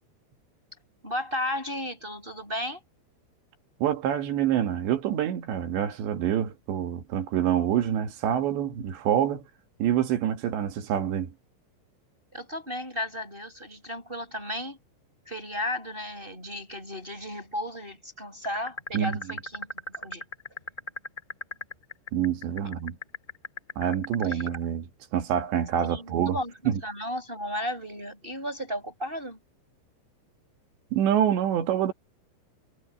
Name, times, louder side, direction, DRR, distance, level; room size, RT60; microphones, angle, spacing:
voice 1, 1.0-2.8 12.3-14.8 15.3-20.2 24.2-24.4 25.8-29.4, left 1 dB, 10° right, 7.2 m, -34 dB
voice 2, 3.8-9.4 9.8-11.3 18.9-19.2 22.1-23.0 23.8-26.4 26.7-26.8 30.9-31.9, right 10 dB, 75° right, 4.1 m, -26 dB
sound 1, 18.4-24.6, left 1 dB, 10° left, 3.3 m, -35 dB
omnidirectional pair, 5.3 m